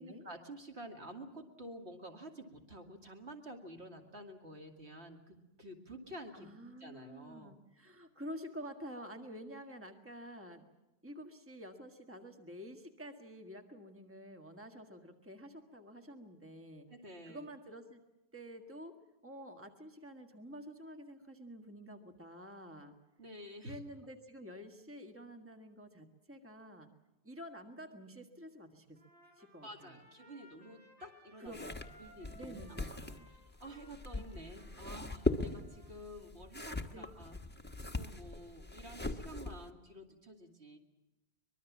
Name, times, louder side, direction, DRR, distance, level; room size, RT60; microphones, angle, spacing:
voice 1, 0.0-6.5 6.8-7.6 16.9-17.4 23.2-23.8 29.6-31.5 32.0-32.6 32.9-37.4 37.8-40.8, right 1 dB, 70° right, 3 dB, 2.7 m, -50 dB
voice 2, 6.3-10.7 11.0-16.9 17.3-18.0 18.3-19.0 19.2-22.9 23.6-26.9 27.2-29.0 29.4-30.0 31.4-31.8 32.3-33.3 36.9-37.1, equal, 10° right, 5 dB, 1.7 m, -49 dB
Trumpet, 28.9-36.0, equal, 85° right, 6.4 m, -62 dB
sound 1, 31.5-39.7, left 2 dB, 10° left, 1.3 m, -40 dB
24.0 x 22.0 x 7.3 m, 0.99 s
omnidirectional pair, 1.2 m